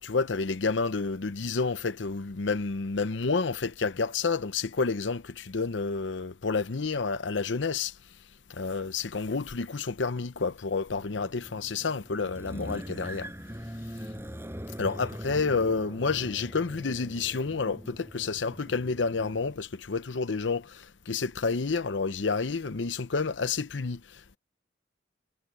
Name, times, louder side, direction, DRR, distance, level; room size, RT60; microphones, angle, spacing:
voice 1, 0.0-7.9 8.5-13.3 14.8-24.4, left 4 dB, 90° left, 0.8 m, -29 dB
sound 1, 11.0-19.5, equal, 15° right, 5.3 m, -42 dB
head